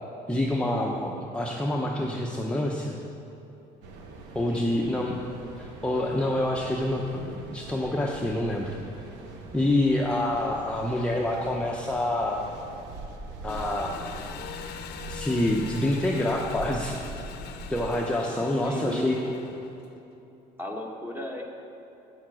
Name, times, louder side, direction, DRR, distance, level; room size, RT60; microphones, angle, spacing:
voice 1, 0.3-3.0 4.3-5.2 5.6-8.8 9.5-12.4 13.4-14.0 15.1-17.0 17.7-19.2, left 1 dB, 5° left, -2 dB, 0.7 m, -27 dB
Mechanical fan, 3.8-17.9, right 2 dB, 90° right, 1.0 m, -43 dB
voice 2, 4.5-5.0 18.6-19.5 20.6-21.4, equal, 10° right, 0 dB, 1.4 m, -35 dB
Engine, 13.5-20.0, left 8 dB, 75° left, 0.7 m, -42 dB
8.6 x 7.1 x 6.3 m, 2.9 s
cardioid pair, 110°, 17 cm